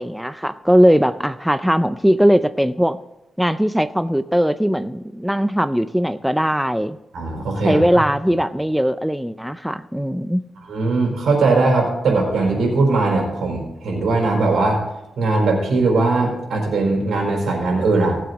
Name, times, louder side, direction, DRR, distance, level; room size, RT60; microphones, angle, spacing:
voice 1, 0.0-3.0 3.4-7.0 7.6-10.4, equal, ahead, 11 dB, 0.4 m, -19 dB
voice 2, 7.1-8.0 10.7-14.8 15.2-18.2, right 3 dB, 85° right, 0 dB, 4.7 m, -19 dB
18.5 x 7.8 x 4.0 m, 0.90 s
wide cardioid pair, 140°, 0 cm